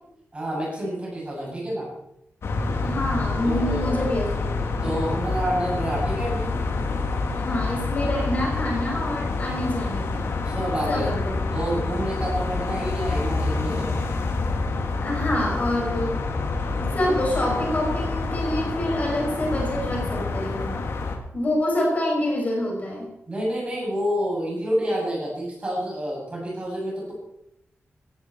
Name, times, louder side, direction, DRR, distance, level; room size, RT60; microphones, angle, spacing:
voice 1, 0.3-1.9 3.4-4.1 4.8-6.5 10.4-11.1 11.5-13.9 23.3-27.1, equal, 25° right, -4 dB, 7.6 m, -28 dB
sound 1, 2.4-21.2, left 3 dB, 70° left, 2.3 m, -27 dB
voice 2, 2.8-4.5 7.3-10.3 10.9-11.4 15.0-16.2 16.7-20.8 21.3-23.1, left 1 dB, 35° left, -2 dB, 6.0 m, -26 dB
17.0 x 15.5 x 4.5 m, 0.83 s
wide cardioid pair, 175°, 5 cm